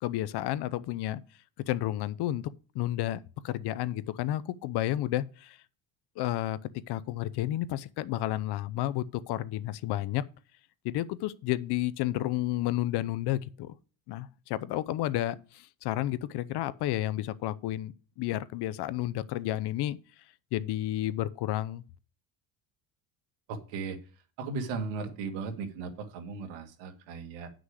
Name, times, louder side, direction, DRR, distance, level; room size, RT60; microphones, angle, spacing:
voice 1, 0.0-1.2 1.6-5.6 6.2-6.6 6.9-10.2 10.8-13.7 14.1-20.0 20.5-21.8, left 14 dB, 65° left, 0.7 m, -31 dB
voice 2, 23.5-24.0 24.4-27.5, right 4 dB, 85° right, 1.9 m, -36 dB
9.6 x 6.2 x 4.8 m
cardioid pair, 120°, 43 cm